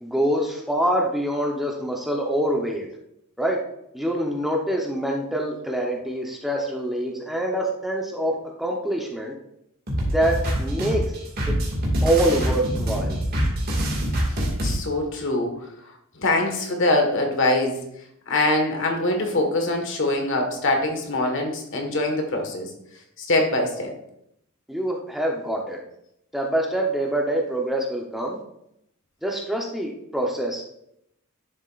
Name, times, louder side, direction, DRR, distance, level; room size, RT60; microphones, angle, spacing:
voice 1, 0.0-2.9 3.4-3.6 3.9-9.3 10.1-11.0 11.5-11.6 12.0-13.2 24.7-25.8 26.3-28.4 29.2-30.7, right 1 dB, ahead, -1 dB, 0.9 m, -25 dB
sound 1, 9.9-14.7, equal, 45° right, 2.2 m, -25 dB
voice 2, 14.6-15.7 16.1-17.8 18.3-22.7 23.2-23.9, left 2 dB, 60° left, 3 dB, 1.6 m, -23 dB
11.0 x 7.1 x 2.5 m, 0.77 s
head